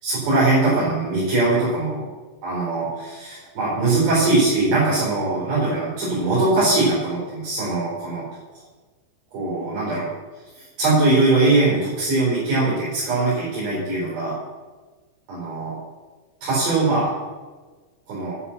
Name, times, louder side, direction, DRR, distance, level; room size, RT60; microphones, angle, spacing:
voice 1, 0.0-2.1 2.4-8.3 9.3-10.1 10.5-14.3 15.3-15.7 16.4-17.1 18.1-18.4, right 2 dB, 55° right, -8 dB, 6.0 m, -21 dB
10.0 x 9.6 x 7.1 m, 1.3 s
omnidirectional pair, 6.0 m